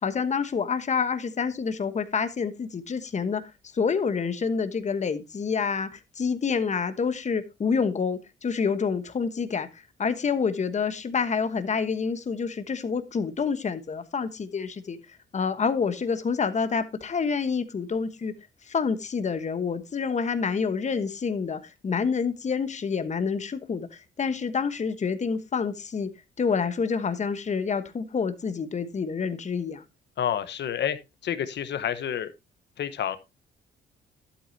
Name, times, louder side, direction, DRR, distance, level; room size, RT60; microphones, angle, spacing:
voice 1, 0.0-3.4 3.7-18.3 18.7-26.1 26.4-29.8, left 5 dB, 35° left, 1.2 m, -28 dB
voice 2, 30.2-31.0 31.2-32.3 32.8-33.2, left 9 dB, 60° left, 1.2 m, -29 dB
11.5 x 8.4 x 2.8 m
cardioid pair, 90°, 20 cm